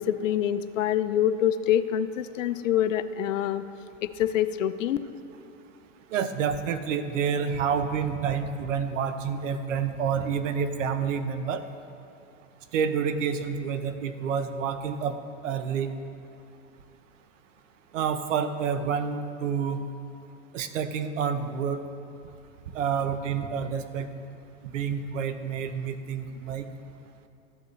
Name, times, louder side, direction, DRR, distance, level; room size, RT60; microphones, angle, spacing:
voice 1, 0.0-3.6 4.0-5.0, left 10 dB, 75° left, 13 dB, 0.6 m, -26 dB
voice 2, 6.1-11.6 12.7-15.2 15.4-15.9 17.9-19.8 20.5-21.8 22.7-24.1 24.6-26.7, right 7 dB, 75° right, 10 dB, 0.8 m, -28 dB
13.5 x 8.3 x 3.2 m, 2.6 s
hypercardioid pair, 120°, 39 cm